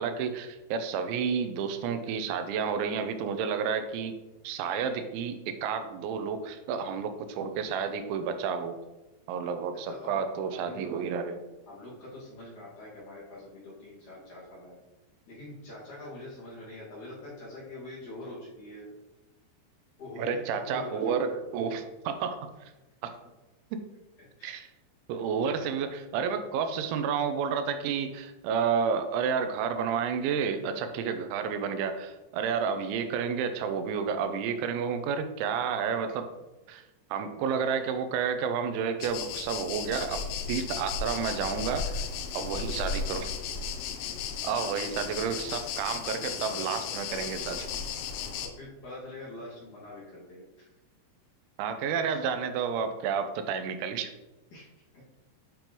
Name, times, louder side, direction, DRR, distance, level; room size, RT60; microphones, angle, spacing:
voice 1, 0.0-4.1 4.4-8.8 9.3-11.4 20.2-22.5 23.0-23.1 23.7-23.8 24.4-24.7 25.1-36.3 36.7-36.8 37.1-40.2 40.5-41.9 42.3-43.3 44.4-47.7 51.6-54.1, right 6 dB, 85° right, 8 dB, 3.0 m, -30 dB
voice 2, 9.7-11.0 11.7-14.8 15.3-18.9 20.0-21.2 24.4-24.6 41.7-41.8 48.4-50.5 52.0-52.2 54.5-55.0, left 1 dB, 50° left, -8 dB, 3.0 m, -44 dB
sound 1, 39.0-48.5, left 6 dB, 90° left, 3.0 m, -35 dB
8.6 x 5.1 x 3.0 m, 1.1 s
omnidirectional pair, 5.2 m